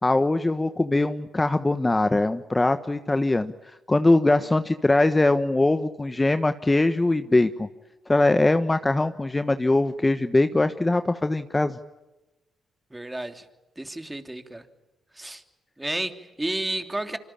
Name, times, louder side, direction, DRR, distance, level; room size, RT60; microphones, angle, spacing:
voice 1, 0.0-3.5 3.9-7.7 8.1-11.8, left 2 dB, 20° left, 10 dB, 1.3 m, -22 dB
voice 2, 12.9-13.4 13.8-14.6 15.1-15.4 15.8-17.2, right 1 dB, 15° right, 7 dB, 3.1 m, -31 dB
26.5 x 25.0 x 8.8 m, 1.0 s
supercardioid pair, 55°, 0 cm